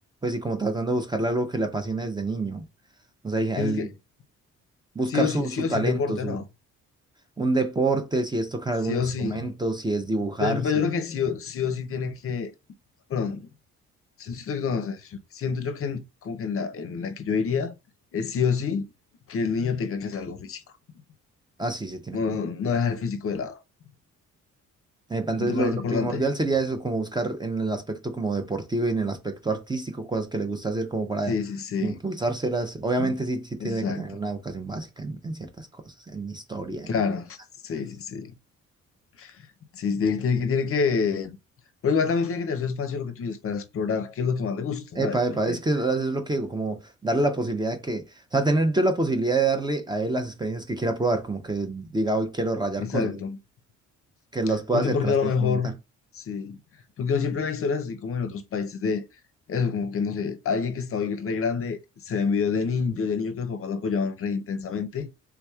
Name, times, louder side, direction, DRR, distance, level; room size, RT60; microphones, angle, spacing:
voice 1, 0.2-2.6 3.2-3.9 4.9-6.4 7.4-10.9 21.6-22.4 25.1-31.3 31.8-36.9 45.0-53.2 54.3-55.7, right 2 dB, 15° right, 0.6 m, -27 dB
voice 2, 3.6-3.9 5.1-6.4 8.8-9.5 10.4-12.5 13.1-13.5 14.2-17.7 18.1-18.8 19.3-20.6 22.1-23.6 25.4-26.2 31.3-32.0 33.0-33.1 33.6-34.0 36.9-37.4 37.6-38.3 39.2-39.4 39.7-41.4 41.8-45.6 52.8-53.4 54.7-55.7 56.1-56.6 57.0-59.1 59.5-65.1, left 5 dB, 50° left, 0.6 m, -27 dB
3.5 x 3.0 x 2.3 m
cardioid pair, 90°, 30 cm